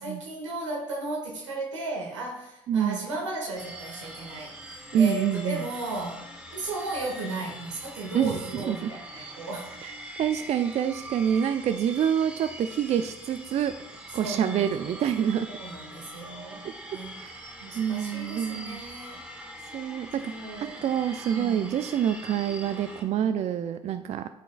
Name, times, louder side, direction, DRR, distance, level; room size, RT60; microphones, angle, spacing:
voice 1, 0.0-9.7 14.2-14.7 15.6-17.2 17.6-19.2 20.2-20.8 21.3-21.8, right 2 dB, 85° right, -2 dB, 1.7 m, -35 dB
voice 2, 2.7-3.0 4.9-5.6 8.1-8.9 9.8-15.5 17.2-18.8 19.7-20.2 20.6-24.3, right 9 dB, 45° right, 9 dB, 0.4 m, -27 dB
sound 1, 3.6-23.0, equal, 5° right, 1.9 m, -43 dB
12.5 x 5.2 x 2.3 m, 0.89 s
hypercardioid pair, 50°, 15 cm